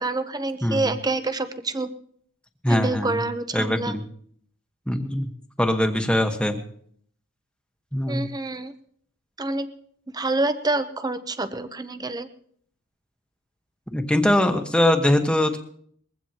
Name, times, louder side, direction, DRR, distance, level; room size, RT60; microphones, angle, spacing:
voice 1, 0.0-1.9 2.7-4.0 8.1-8.7 9.4-9.7 10.1-12.3, right 2 dB, 15° right, 10 dB, 0.8 m, -27 dB
voice 2, 2.6-3.2 3.5-4.0 4.9-5.3 5.6-6.6 7.9-8.3 13.9-15.6, left 1 dB, 5° left, 5 dB, 1.3 m, -22 dB
21.5 x 15.5 x 2.9 m, 0.63 s
head